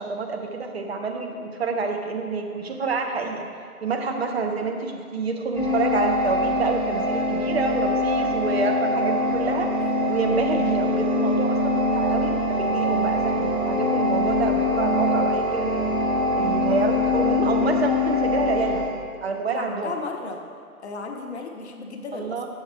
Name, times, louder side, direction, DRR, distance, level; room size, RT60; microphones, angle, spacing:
voice 1, 0.0-3.5 3.8-9.8 10.1-15.9 16.4-18.9 19.2-19.9 22.1-22.5, right 4 dB, 45° right, 3 dB, 0.7 m, -28 dB
sound 1, 5.5-18.9, left 1 dB, 10° right, 1.0 m, -23 dB
voice 2, 9.8-10.3 19.5-20.4 20.8-22.5, left 3 dB, 45° left, 3 dB, 0.8 m, -35 dB
7.7 x 6.3 x 3.2 m, 2.2 s
figure-of-eight pair, 135°, 45 cm